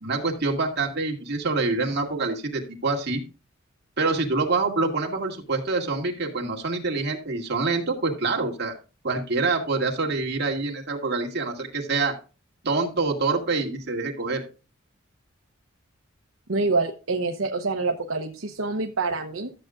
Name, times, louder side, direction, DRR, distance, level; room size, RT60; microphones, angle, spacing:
voice 1, 0.0-3.2 4.0-8.7 9.0-12.2 12.6-14.4, right 3 dB, 50° right, 0 dB, 2.3 m, -26 dB
voice 2, 16.5-19.5, right 3 dB, 80° right, 3 dB, 0.9 m, -26 dB
13.5 x 7.8 x 2.5 m, 0.33 s
head